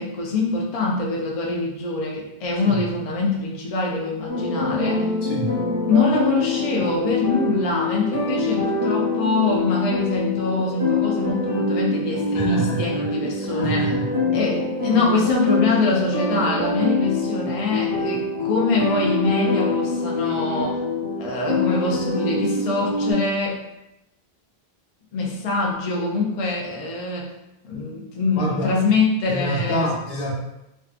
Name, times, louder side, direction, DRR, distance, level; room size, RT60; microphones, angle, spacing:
voice 1, 0.0-5.1 5.9-13.9 14.3-20.8 21.2-23.6 25.1-27.3 27.6-29.9, left 3 dB, 50° left, -1 dB, 0.4 m, -24 dB
sound 1, 4.3-23.1, left 2 dB, 20° left, 1.1 m, -25 dB
voice 2, 5.2-5.6 12.3-13.1 13.4-14.2 28.4-28.8 29.3-30.3, equal, 75° left, -2 dB, 0.9 m, -27 dB
2.6 x 2.2 x 2.4 m, 0.89 s
omnidirectional pair, 1.0 m